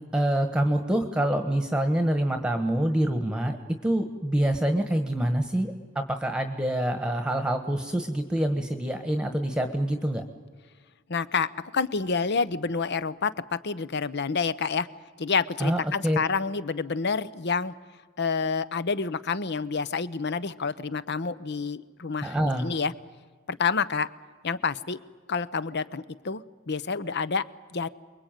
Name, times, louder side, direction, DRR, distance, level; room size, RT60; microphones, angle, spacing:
voice 1, 0.1-3.6 3.8-10.2 15.6-16.2 22.2-22.7, right 1 dB, 5° right, 7 dB, 1.4 m, -26 dB
voice 2, 11.1-11.5 11.7-14.9 15.2-17.7 18.2-22.9 23.5-24.1 24.4-25.0 25.3-27.4 27.7-27.9, left 5 dB, 55° left, 16 dB, 0.9 m, -28 dB
28.0 x 22.0 x 9.1 m, 1.5 s
head